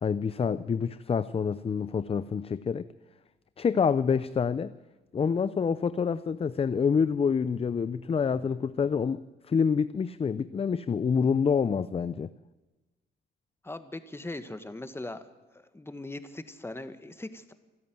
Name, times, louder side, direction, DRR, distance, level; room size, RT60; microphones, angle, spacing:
voice 1, 0.0-2.9 3.6-4.7 5.1-9.2 9.5-12.3, left 6 dB, 30° left, 15 dB, 0.6 m, -27 dB
voice 2, 13.6-15.2 15.5-17.5, left 2 dB, 10° left, 10 dB, 1.7 m, -40 dB
27.0 x 11.0 x 9.4 m, 1.2 s
cardioid pair, 90°, 20 cm